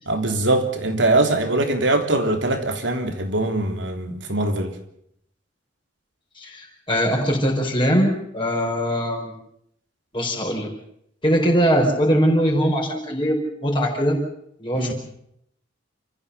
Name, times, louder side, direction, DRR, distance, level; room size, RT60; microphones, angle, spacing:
voice 1, 0.1-4.8 14.7-14.9, right 2 dB, 75° right, 5 dB, 3.5 m, -22 dB
voice 2, 6.4-9.3 10.1-10.7 11.2-14.2 14.6-14.9, equal, 25° left, -1 dB, 4.9 m, -21 dB
28.5 x 15.0 x 7.1 m, 0.73 s
head